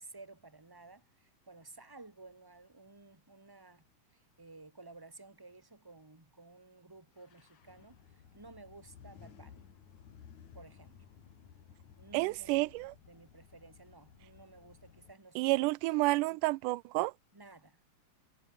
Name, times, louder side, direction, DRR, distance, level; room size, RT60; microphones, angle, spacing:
voice 1, 0.0-3.8 4.1-9.6 10.5-11.0 12.0-12.6 13.1-16.4 17.3-17.9, right 3 dB, 10° right, 1.7 m, -55 dB
sound 1, 7.1-15.1, left 8 dB, 60° left, 3.8 m, -57 dB
voice 2, 12.1-12.9 15.4-17.1, right 22 dB, 80° right, 2.0 m, -30 dB
omnidirectional pair, 3.9 m